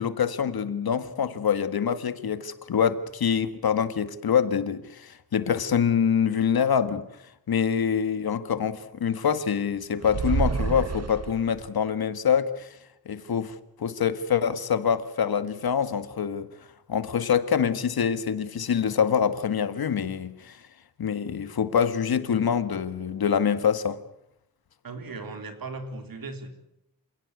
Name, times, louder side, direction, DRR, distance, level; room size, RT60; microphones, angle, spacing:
voice 1, 0.0-7.1 7.5-12.7 13.1-16.5 16.9-20.6 21.0-24.0, left 7 dB, 80° left, 1.7 m, -25 dB
sound 1, 10.0-11.7, right 5 dB, 45° right, 1.1 m, -28 dB
voice 2, 24.8-26.5, right 3 dB, 70° right, 3.8 m, -37 dB
28.0 x 17.0 x 9.6 m
wide cardioid pair, 155°, 36 cm